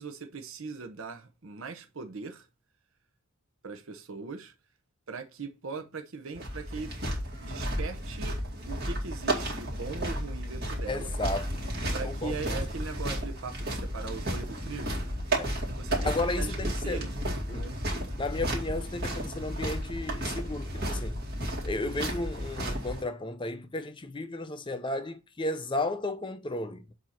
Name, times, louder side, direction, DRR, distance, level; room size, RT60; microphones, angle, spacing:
voice 1, 0.0-2.5 3.6-4.5 5.1-6.9 7.4-8.4 8.7-11.1 11.9-15.0 15.8-17.2 17.5-17.8, right 4 dB, 65° right, 0.8 m, -40 dB
sound 1, 6.3-23.0, right 1 dB, 50° right, 2.2 m, -33 dB
voice 2, 10.9-11.6 12.0-12.3 15.4-15.5 16.0-17.0 17.5-17.7 17.9-21.2 21.6-26.9, left 2 dB, 20° left, 0.6 m, -34 dB
7.3 x 2.8 x 5.7 m
head